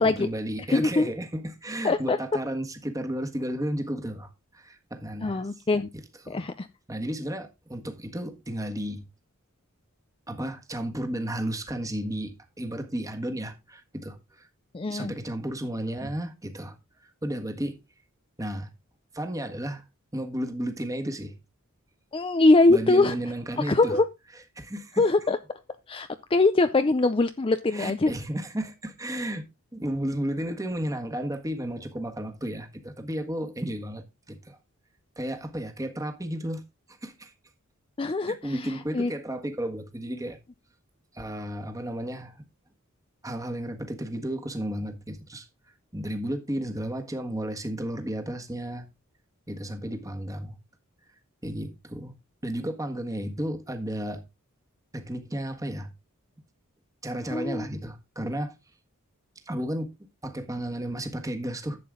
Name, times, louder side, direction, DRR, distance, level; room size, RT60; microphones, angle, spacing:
voice 1, 0.0-4.3 4.5-5.4 6.2-6.5 6.9-9.1 10.3-14.5 14.9-16.7 17.2-17.8 18.4-18.7 19.1-19.8 20.1-21.4 22.7-24.0 24.5-25.0 27.7-29.4 29.7-34.6 35.2-36.6 37.0-37.3 38.3-40.4 41.1-42.4 43.2-45.5 45.9-48.9 49.5-50.5 51.4-52.1 52.4-54.2 54.9-55.9 57.0-58.5 59.5-59.9 60.2-61.8, right 1 dB, 15° right, 1.5 m, -33 dB
voice 2, 0.7-1.1 1.8-2.2 5.2-5.9 6.3-6.7 14.7-15.1 22.1-23.2 23.6-24.0 25.0-25.4 25.9-28.1 38.0-39.1 57.3-57.6, left 2 dB, 25° left, 0.5 m, -22 dB
11.0 x 7.6 x 3.7 m
head